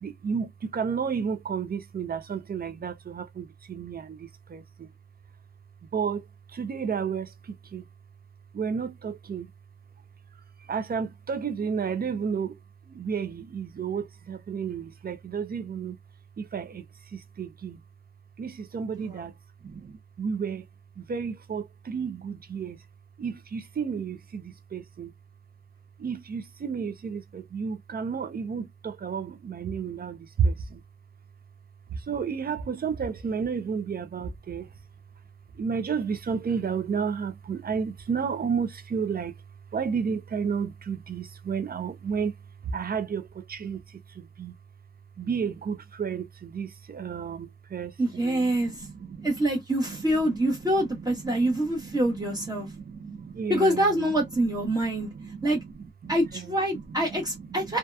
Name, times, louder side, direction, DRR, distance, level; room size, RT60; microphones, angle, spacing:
voice 1, 0.0-4.9 5.9-7.9 8.5-9.5 10.6-12.6 12.9-16.0 16.4-17.8 18.4-19.3 19.6-20.7 21.0-22.8 23.2-25.1 26.0-30.8 31.9-34.7 35.5-39.3 39.7-42.4 42.6-44.6 45.2-49.3 50.2-54.1 54.4-57.2 57.5-57.7, right 6 dB, 50° right, 0.4 m, -32 dB
voice 2, 48.0-48.9 49.2-52.7 53.5-55.1 55.4-55.6 56.1-57.8, right 1 dB, 20° right, 0.9 m, -25 dB
2.7 x 2.2 x 2.2 m
wide cardioid pair, 135°, 20 cm